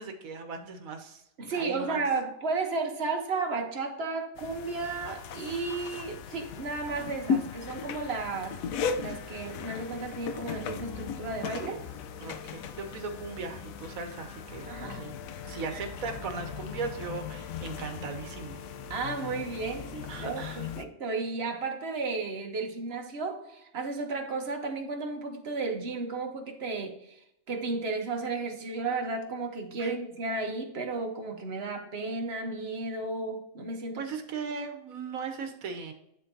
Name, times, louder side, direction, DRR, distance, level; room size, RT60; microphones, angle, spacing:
voice 1, 0.0-1.2 1.5-2.0 12.2-14.7 15.0-15.1 15.4-18.6 20.1-20.6 29.8-29.9 34.0-35.9, right 4 dB, 80° right, 6 dB, 1.4 m, -38 dB
voice 2, 1.4-8.6 9.0-11.8 14.7-15.1 15.7-15.8 18.9-27.2 27.5-34.0, right 3 dB, 50° right, 3 dB, 1.3 m, -33 dB
sound 1, 4.4-20.9, left 6 dB, 80° left, 1.0 m, -37 dB
10.5 x 3.9 x 2.7 m, 0.79 s
omnidirectional pair, 1.4 m